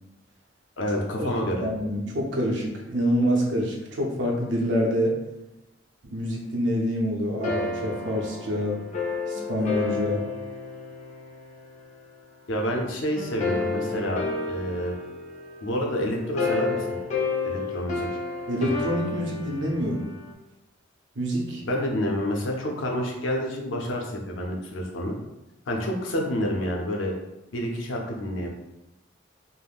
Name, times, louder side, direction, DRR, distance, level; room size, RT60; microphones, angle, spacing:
voice 1, 0.8-1.7 12.5-14.9 15.6-17.0 17.4-18.1 21.6-25.2 25.7-27.1 27.5-28.5, equal, 90° left, 0 dB, 0.6 m, -28 dB
voice 2, 1.6-5.2 6.1-8.8 9.3-10.2 18.5-20.1 21.2-21.6, equal, 70° right, -1 dB, 0.6 m, -26 dB
sound 1, 7.4-12.0 13.2-20.3, left 4 dB, 40° left, 0.4 m, -31 dB
3.4 x 2.1 x 2.4 m, 0.95 s
head